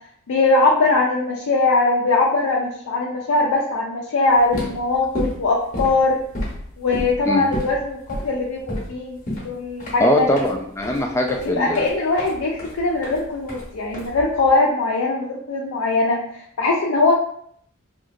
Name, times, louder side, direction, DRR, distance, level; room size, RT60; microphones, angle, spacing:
voice 1, 0.3-6.2 6.8-10.3 11.4-17.1, left 3 dB, 85° left, -2 dB, 0.4 m, -21 dB
sound 1, 4.3-14.5, equal, 40° left, 0.9 m, -31 dB
voice 2, 10.0-11.9, left 1 dB, 15° left, 2 dB, 0.3 m, -21 dB
2.8 x 2.5 x 2.4 m, 0.68 s
head